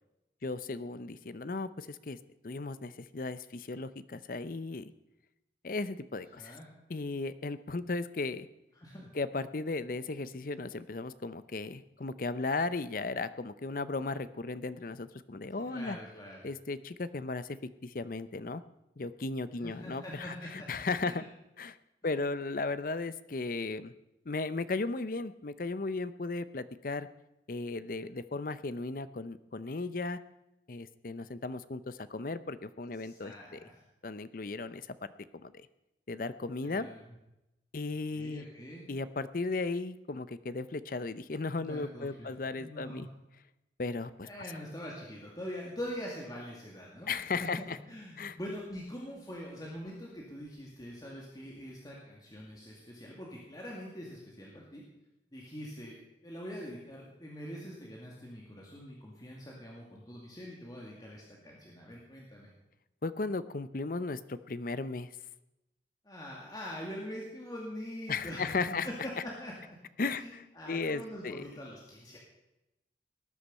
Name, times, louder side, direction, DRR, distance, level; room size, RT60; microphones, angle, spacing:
voice 1, 0.4-2.2 2.4-4.9 5.6-6.6 6.9-8.5 9.1-16.0 16.4-18.6 19.0-21.2 21.6-21.8 22.0-23.9 24.3-27.1 27.5-30.2 30.7-33.6 34.0-35.0 35.3-35.7 36.1-36.9 37.7-38.4 38.9-43.1 43.8-44.3 47.1-47.8 48.2-48.4 63.0-65.1 68.1-68.9 70.0-71.4, left 3 dB, 50° left, 14 dB, 0.6 m, -36 dB
voice 2, 6.3-6.7 8.8-9.1 15.7-16.5 19.6-21.3 22.0-22.2 33.0-33.8 36.6-37.1 38.1-38.8 41.5-43.1 44.2-54.8 55.3-62.5 66.0-69.5 70.1-72.2, equal, 20° left, -3 dB, 2.2 m, -44 dB
18.5 x 10.0 x 5.5 m, 0.93 s
head